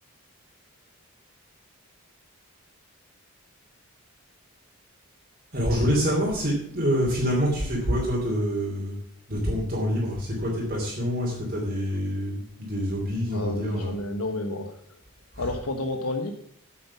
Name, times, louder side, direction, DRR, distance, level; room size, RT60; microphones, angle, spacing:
voice 1, 5.5-9.0 9.3-13.9 15.3-15.5, equal, 40° right, -3 dB, 2.8 m, -26 dB
voice 2, 13.3-14.8 15.4-16.3, left 2 dB, 80° left, 5 dB, 1.2 m, -30 dB
8.6 x 7.7 x 7.0 m, 0.67 s
head